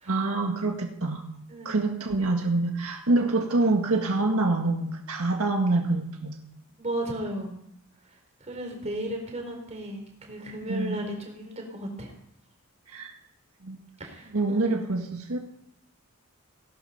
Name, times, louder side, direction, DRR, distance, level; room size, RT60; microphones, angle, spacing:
voice 1, 0.1-1.2 1.6-6.4 10.7-11.0 12.9-13.1 13.6-13.8 14.3-15.4, right 2 dB, 80° right, 2 dB, 1.8 m, -26 dB
voice 2, 1.5-1.8 6.8-7.6 8.5-12.1 14.0-14.8, right 1 dB, 30° right, 2 dB, 4.3 m, -35 dB
17.5 x 12.0 x 5.8 m, 0.72 s
head